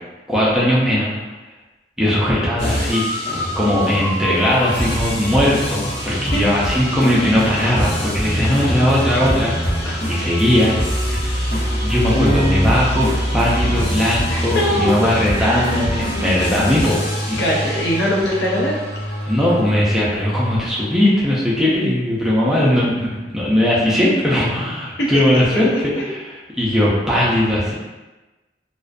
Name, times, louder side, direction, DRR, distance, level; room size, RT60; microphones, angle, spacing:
voice 1, 0.3-1.1 2.0-9.5 10.1-17.0 17.3-17.7 19.2-26.2 26.6-27.7, left 1 dB, 5° right, -7 dB, 0.4 m, -19 dB
sound 1, 2.6-20.6, equal, 60° left, 1.0 m, -24 dB
voice 2, 12.1-12.8 14.3-15.1 15.5-15.8 17.4-18.7 25.0-25.1, equal, 80° left, -5 dB, 0.6 m, -21 dB
2.4 x 2.1 x 2.4 m, 1.1 s
head